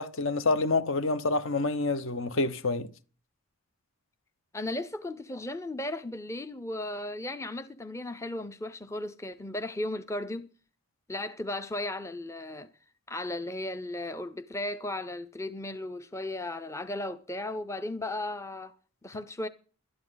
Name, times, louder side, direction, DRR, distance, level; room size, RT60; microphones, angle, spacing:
voice 1, 0.0-2.9, left 3 dB, 60° left, 1.0 m, -27 dB
voice 2, 4.5-10.5 11.1-12.7 13.1-18.7 19.0-19.5, left 1 dB, 15° left, 0.6 m, -35 dB
17.5 x 12.5 x 4.0 m
head